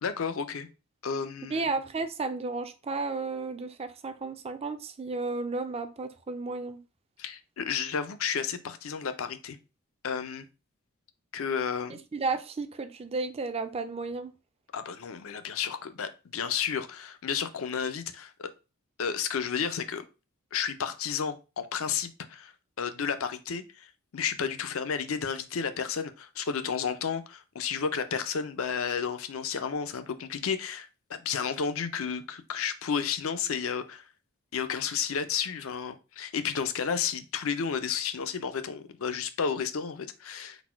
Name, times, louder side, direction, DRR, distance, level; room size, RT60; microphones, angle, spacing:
voice 1, 0.0-0.7 1.0-1.7 7.2-9.6 10.0-10.5 11.3-12.0 14.7-18.5 19.0-20.0 20.5-22.5 22.8-23.9 24.1-34.0 34.5-40.6, left 6 dB, 65° left, 0.5 m, -32 dB
voice 2, 1.5-6.8 11.9-14.3, right 3 dB, 30° right, 0.4 m, -33 dB
4.0 x 2.2 x 4.4 m
head